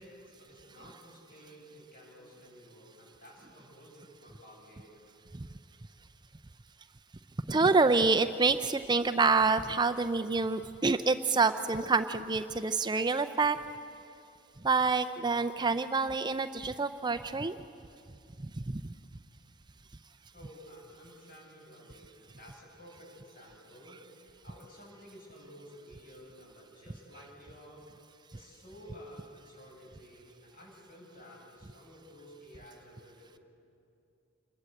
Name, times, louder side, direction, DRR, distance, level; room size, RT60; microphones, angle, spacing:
voice 1, 0.0-5.0 20.3-27.8 28.3-33.4, equal, 45° left, -2 dB, 7.9 m, -53 dB
voice 2, 7.5-13.6 14.6-17.6, right 4 dB, 20° right, 9 dB, 0.5 m, -27 dB
28.0 x 21.5 x 7.9 m, 2.6 s
head